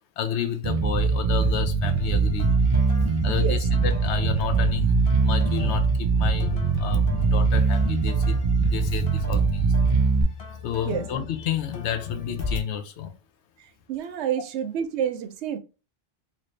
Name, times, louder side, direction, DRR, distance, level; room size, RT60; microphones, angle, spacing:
voice 1, 0.2-2.5 3.2-9.7 10.6-13.1, left 9 dB, 90° left, 0.9 m, -31 dB
Bass guitar, 0.6-10.2, right 4 dB, 50° right, 0.3 m, -22 dB
sound 1, 1.8-12.6, left 5 dB, 60° left, 0.8 m, -37 dB
voice 2, 3.2-3.6 7.1-7.2 10.9-11.0 13.9-15.6, right 9 dB, 90° right, 0.9 m, -29 dB
3.1 x 2.6 x 3.1 m
omnidirectional pair, 1.1 m